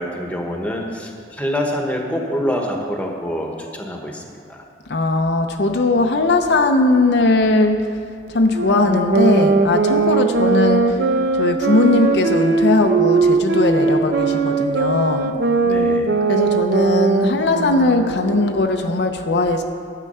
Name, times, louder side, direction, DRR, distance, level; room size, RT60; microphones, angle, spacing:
voice 1, 0.0-4.6 15.6-16.1, equal, 10° left, 1 dB, 1.1 m, -26 dB
voice 2, 4.9-7.9 8.3-11.0 11.4-15.3 16.3-19.6, left 2 dB, 65° left, 5 dB, 0.7 m, -19 dB
sound 1, 8.5-18.5, right 4 dB, 65° right, 0.7 m, -19 dB
12.0 x 7.5 x 5.6 m, 2.2 s
head